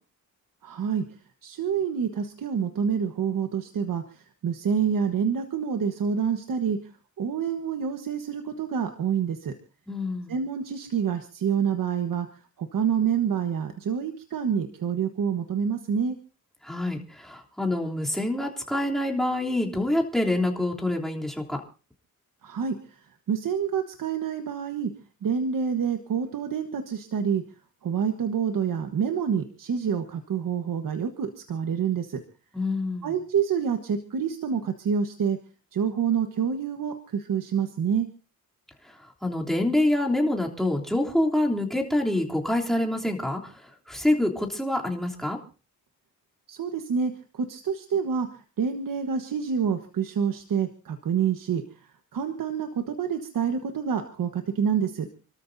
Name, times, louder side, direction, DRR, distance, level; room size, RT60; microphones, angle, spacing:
voice 1, 0.6-1.0 1.4-6.9 7.2-9.5 10.3-12.3 12.6-16.2 22.4-23.0 23.3-24.9 25.2-27.4 27.8-32.2 33.0-35.4 35.7-38.1 46.5-48.3 48.6-51.6 52.1-55.1, right 7 dB, 70° right, 6 dB, 1.4 m, -27 dB
voice 2, 9.9-10.3 16.6-21.6 32.5-33.1 39.2-45.4, left 1 dB, ahead, -1 dB, 3.2 m, -26 dB
29.0 x 13.5 x 2.7 m, 0.35 s
cardioid pair, 95°, 34 cm